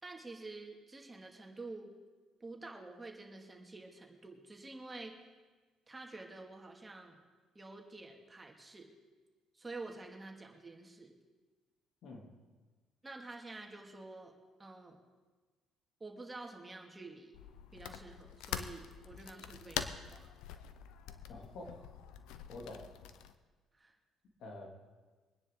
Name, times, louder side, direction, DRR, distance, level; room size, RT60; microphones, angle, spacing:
voice 1, 0.0-1.9 2.4-5.2 5.9-7.2 7.5-8.9 9.5-11.1 13.0-14.3 14.6-15.0 16.0-17.4 17.7-20.3 23.7-23.9, right 3 dB, 20° right, 1 dB, 2.3 m, -49 dB
sound 1, 17.3-23.3, left 9 dB, 85° left, 0.7 m, -44 dB
voice 2, 21.3-21.9 22.5-22.9 24.4-24.7, left 2 dB, 65° left, 0 dB, 3.0 m, -47 dB
24.0 x 9.8 x 3.9 m, 1.3 s
supercardioid pair, 80°, 0 cm